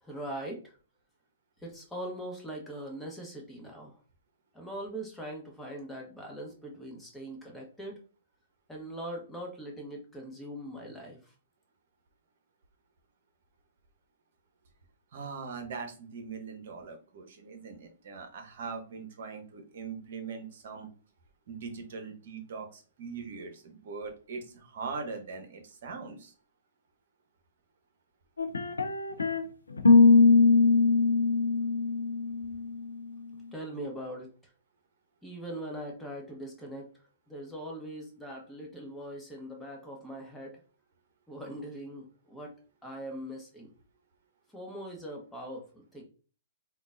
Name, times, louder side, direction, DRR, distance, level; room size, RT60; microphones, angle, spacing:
voice 1, 0.0-0.7 1.6-4.0 4.5-8.0 8.7-11.3 33.5-34.3 35.2-36.9 37.3-40.6 41.3-42.5 42.8-43.7 44.5-46.0, right 1 dB, 5° left, 0 dB, 1.0 m, -41 dB
voice 2, 15.1-20.9 21.5-26.3, right 5 dB, 55° right, 5 dB, 0.8 m, -41 dB
sound 1, 28.4-29.4 29.8-32.7, left 4 dB, 80° left, 0.4 m, -21 dB
3.7 x 2.3 x 2.5 m, 0.38 s
figure-of-eight pair, 115°, 0 cm